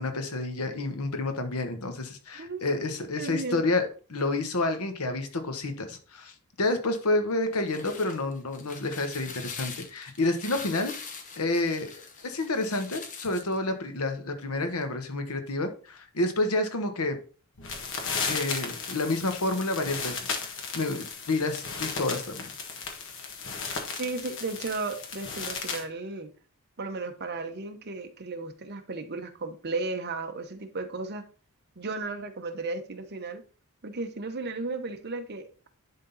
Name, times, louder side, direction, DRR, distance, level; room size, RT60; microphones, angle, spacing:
voice 1, 0.0-10.9 11.4-17.2 18.3-22.5, left 2 dB, 85° left, 1.3 m, -29 dB
voice 2, 2.3-2.8 3.2-3.7 23.9-26.3 26.8-31.2 31.8-33.4 33.8-35.7, right 3 dB, 50° right, 1.0 m, -35 dB
sound 1, 7.4-13.6, left 5 dB, 35° left, 1.1 m, -43 dB
sound 2, 17.6-25.8, left 5 dB, 60° left, 1.6 m, -35 dB
11.0 x 3.8 x 4.1 m
head